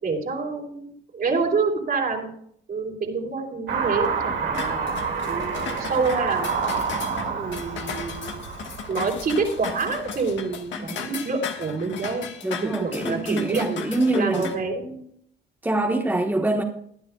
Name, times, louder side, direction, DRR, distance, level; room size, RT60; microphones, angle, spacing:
voice 1, 0.0-2.3 2.7-5.0 5.2-6.8 7.3-8.4 8.9-12.3 12.6-13.8 14.1-15.0, right 4 dB, 50° right, 1 dB, 3.4 m, -27 dB
Car passing by / Accelerating revving vroom, 3.7-10.3, right 5 dB, 65° right, 2.4 m, -29 dB
sound 1, 4.5-14.5, left 6 dB, 70° left, 1.6 m, -36 dB
voice 2, 12.4-14.4 15.6-16.6, right 2 dB, 10° right, 0 dB, 1.3 m, -24 dB
22.0 x 10.0 x 2.4 m, 0.66 s
cardioid pair, 90°, 20 cm